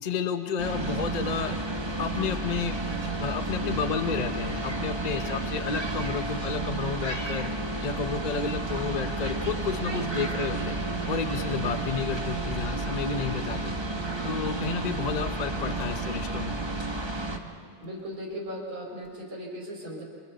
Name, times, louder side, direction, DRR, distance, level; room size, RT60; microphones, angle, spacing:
voice 1, 0.0-1.5 2.0-2.8 3.2-7.5 7.8-10.8 11.1-13.7 14.2-16.5, left 6 dB, 60° left, 8 dB, 0.4 m, -31 dB
sound 1, 0.6-17.4, right 2 dB, 15° right, 1.0 m, -31 dB
sound 2, 9.3-19.2, left 1 dB, 35° left, 1.4 m, -49 dB
voice 2, 17.8-20.0, equal, 70° right, -1 dB, 4.9 m, -37 dB
29.0 x 25.5 x 4.2 m, 2.1 s
omnidirectional pair, 2.3 m